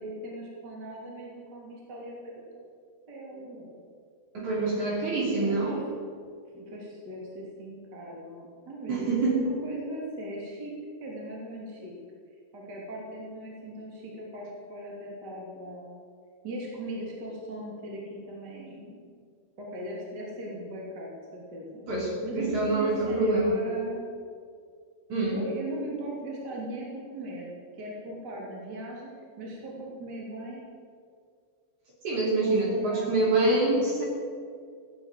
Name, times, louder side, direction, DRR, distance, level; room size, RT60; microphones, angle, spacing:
voice 1, 0.0-2.4 3.1-3.8 5.0-5.8 6.5-10.7 11.0-11.9 12.5-15.9 16.4-19.1 19.6-24.0 25.3-29.1 29.4-30.7 32.4-33.9, right 1 dB, 25° right, -3 dB, 2.9 m, -39 dB
voice 2, 4.3-5.7 8.9-9.4 21.9-23.6 25.1-25.4 32.0-34.1, right 2 dB, 45° right, -3 dB, 4.1 m, -26 dB
16.0 x 10.5 x 7.7 m, 2.2 s
omnidirectional pair, 5.0 m